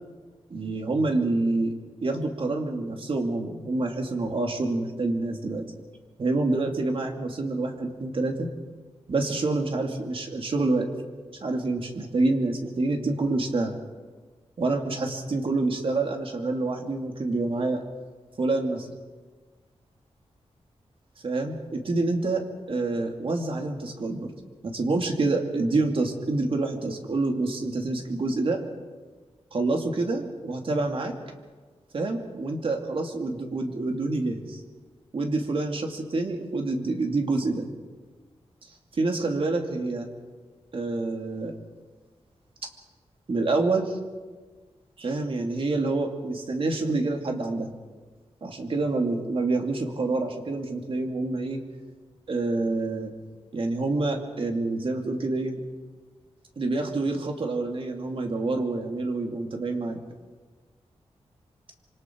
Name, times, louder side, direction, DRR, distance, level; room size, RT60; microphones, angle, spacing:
voice 1, 0.5-1.7 2.0-5.6 6.2-8.5 9.1-10.9 11.4-13.7 14.6-17.8 18.4-18.9 21.2-22.4 22.7-24.3 24.6-28.6 29.5-31.1 31.9-34.6 35.1-37.7 38.9-40.1 40.7-41.5 43.3-43.9 45.0-47.7 48.4-51.6 52.3-53.1 53.5-55.6 56.6-60.0, right 2 dB, 55° right, 3 dB, 2.8 m, -27 dB
26.5 x 25.0 x 4.7 m, 1.4 s
wide cardioid pair, 135°, 11 cm